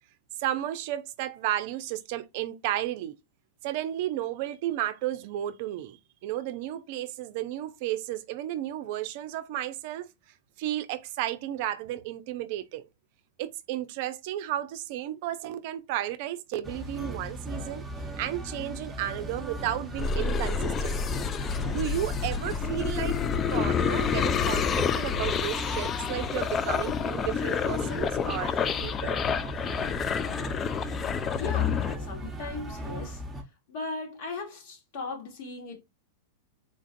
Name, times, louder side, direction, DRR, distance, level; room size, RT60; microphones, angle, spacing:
voice 1, 0.4-3.1 3.6-10.1 10.6-12.9 13.4-17.8 18.2-21.0 21.4-23.2 23.5-29.2, right 13 dB, 55° right, 0.5 m, -33 dB
sound 1, 16.6-33.4, equal, 10° right, 1.0 m, -38 dB
sound 2, 20.0-32.0, left 7 dB, 25° left, 0.3 m, -29 dB
voice 2, 31.3-33.2 33.7-35.8, left 3 dB, 60° left, 1.5 m, -38 dB
3.8 x 2.5 x 2.5 m
hypercardioid pair, 105°, 0 cm